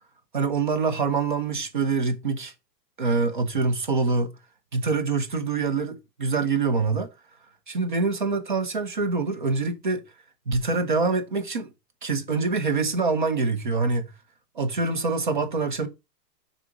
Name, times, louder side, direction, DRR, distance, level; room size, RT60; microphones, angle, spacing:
voice 1, 0.3-2.5 3.0-4.3 4.7-7.1 7.7-10.0 10.5-11.7 12.0-14.1 14.6-15.9, right 4 dB, 35° right, 0.4 m, -25 dB
6.1 x 3.8 x 4.9 m
supercardioid pair, 170°, 50 cm